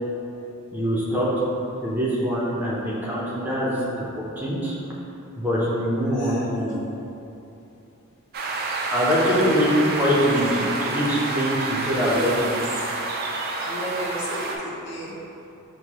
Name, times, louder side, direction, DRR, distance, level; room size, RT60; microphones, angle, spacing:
voice 1, 0.7-1.3 1.8-3.8 4.1-4.8 5.4-6.7 8.9-12.6, equal, 10° right, -7 dB, 0.7 m, -23 dB
voice 2, 6.1-7.1 9.0-9.6 13.6-15.1, equal, 55° left, -7 dB, 0.9 m, -34 dB
sound 1, 8.3-14.6, right 3 dB, 45° right, 0.4 m, -28 dB
6.3 x 2.2 x 3.0 m, 2.9 s
head